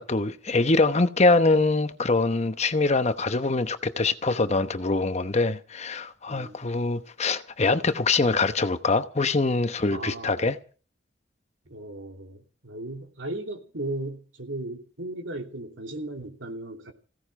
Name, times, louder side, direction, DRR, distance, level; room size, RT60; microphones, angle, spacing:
voice 1, 0.0-10.6, left 3 dB, 35° left, 0.9 m, -24 dB
voice 2, 6.3-6.6 9.9-10.5 11.6-16.9, right 2 dB, 90° right, 3.0 m, -36 dB
16.5 x 16.5 x 4.9 m
head